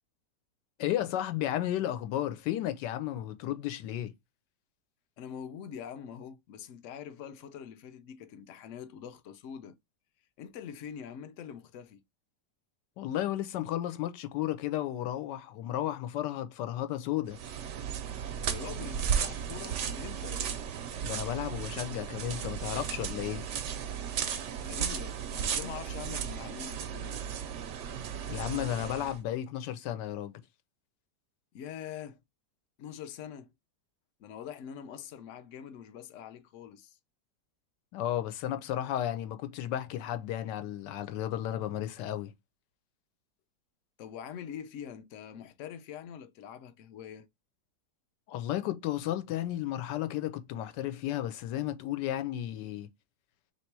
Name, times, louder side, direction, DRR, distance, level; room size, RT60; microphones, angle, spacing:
voice 1, 0.8-4.1 13.0-17.4 21.0-23.4 28.3-30.4 37.9-42.3 48.3-52.9, left 12 dB, 85° left, 1.2 m, -33 dB
voice 2, 5.2-9.8 10.4-12.0 18.5-20.7 24.6-27.3 31.5-32.2 32.8-33.5 34.2-37.0 44.0-47.3, left 8 dB, 65° left, 0.8 m, -44 dB
sound 1, 17.3-29.2, right 8 dB, 70° right, 0.7 m, -35 dB
3.1 x 2.9 x 4.5 m
omnidirectional pair, 1.9 m